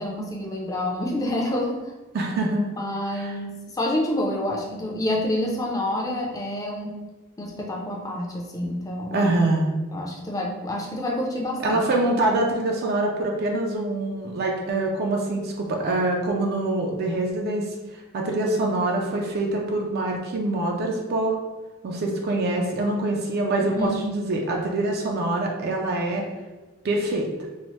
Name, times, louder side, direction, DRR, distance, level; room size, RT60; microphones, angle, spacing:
voice 1, 0.0-1.9 2.8-6.9 7.4-9.3 9.9-11.8 23.6-24.1, left 1 dB, 15° left, -1 dB, 0.4 m, -28 dB
voice 2, 2.1-2.7 3.2-3.4 9.1-9.7 11.6-17.7 18.1-21.4 21.8-26.2 26.8-27.3, right 2 dB, 50° right, 0 dB, 0.3 m, -24 dB
3.0 x 2.0 x 3.0 m, 1.2 s
head